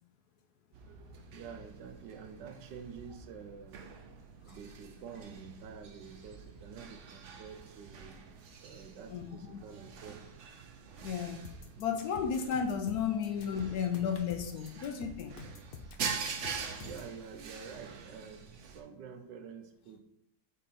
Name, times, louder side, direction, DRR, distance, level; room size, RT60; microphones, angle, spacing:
sound 1, 0.7-18.8, right 6 dB, 55° right, 0.9 m, -45 dB
voice 1, 0.9-3.8 4.5-8.4 8.6-10.2 16.8-20.0, right 6 dB, 75° right, 7 dB, 1.4 m, -48 dB
voice 2, 9.1-9.6 11.0-11.4 11.8-15.3, left 7 dB, 70° left, 5 dB, 1.0 m, -33 dB
sound 2, 11.4-17.1, left 4 dB, 90° left, 0.4 m, -48 dB
7.6 x 3.8 x 4.2 m, 0.76 s
omnidirectional pair, 1.9 m